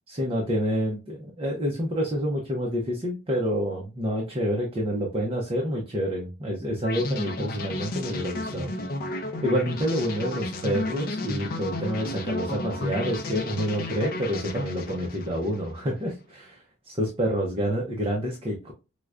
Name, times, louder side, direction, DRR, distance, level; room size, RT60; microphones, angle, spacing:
voice 1, 0.1-8.7 9.4-18.7, equal, 25° right, -1 dB, 0.6 m, -28 dB
sound 1, 6.8-15.9, left 2 dB, 40° left, 0.5 m, -33 dB
4.6 x 2.1 x 2.4 m, 0.29 s
head